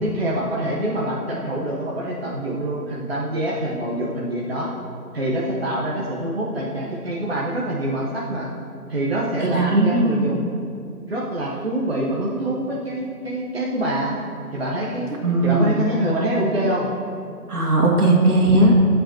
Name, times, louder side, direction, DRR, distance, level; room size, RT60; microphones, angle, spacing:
voice 1, 0.0-4.7 5.1-8.5 8.9-10.5 11.1-14.2 14.5-15.1 15.4-16.9, right 1 dB, 40° right, -6 dB, 1.2 m, -25 dB
voice 2, 9.4-10.5 15.2-15.7 17.5-18.7, right 2 dB, 70° right, -1 dB, 2.4 m, -18 dB
20.0 x 7.8 x 3.0 m, 2.4 s
figure-of-eight pair, 165°, 48 cm